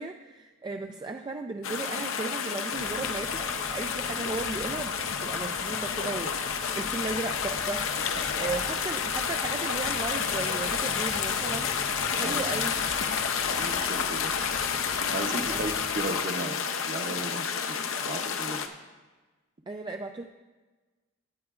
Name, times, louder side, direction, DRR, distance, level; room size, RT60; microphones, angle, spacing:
voice 1, 0.0-7.9 8.4-12.8 15.5-15.7 19.7-20.3, right 3 dB, 20° right, 4 dB, 0.3 m, -36 dB
sound 1, 1.6-18.7, left 6 dB, 75° left, 0.7 m, -30 dB
sound 2, 2.7-16.2, left 1 dB, 25° left, 0.6 m, -46 dB
voice 2, 8.1-8.5 12.2-12.4 13.4-14.3 15.1-17.8 18.0-18.6, right 2 dB, 40° right, 6 dB, 0.8 m, -36 dB
16.5 x 9.6 x 2.4 m, 1.3 s
head